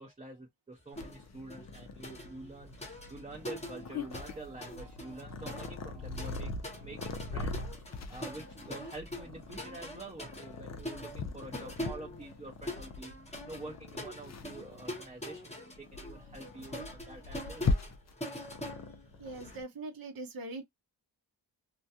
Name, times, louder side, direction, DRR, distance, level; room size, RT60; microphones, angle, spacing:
voice 1, 0.0-2.7 3.1-7.6 8.1-13.1 13.4-17.7, right 2 dB, 15° right, 0.6 m, -47 dB
Purr, 0.9-19.6, left 3 dB, 40° left, 0.5 m, -41 dB
sound 1, 1.0-1.2 1.5-4.3 4.6-19.6, left 1 dB, 15° left, 0.9 m, -44 dB
voice 2, 19.2-20.7, right 2 dB, 55° right, 0.8 m, -41 dB
2.3 x 2.2 x 2.7 m
wide cardioid pair, 125°, 43 cm